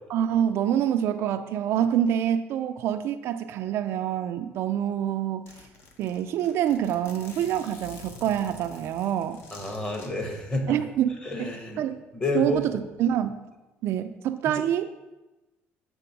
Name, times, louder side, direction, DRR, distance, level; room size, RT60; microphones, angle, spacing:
voice 1, 0.1-5.5 6.0-9.4 10.7-11.1 11.4-12.0 12.3-13.4 13.8-14.9, right 10 dB, 60° right, 9 dB, 0.4 m, -26 dB
Zipper (clothing), 4.7-4.8 5.0-5.1 5.5-10.1, left 2 dB, 60° left, 1.1 m, -47 dB
voice 2, 9.5-10.8 11.2-11.8 12.1-12.6, left 2 dB, 20° left, 3 dB, 1.1 m, -29 dB
7.0 x 3.5 x 5.9 m, 1.1 s
cardioid pair, 135°, 5 cm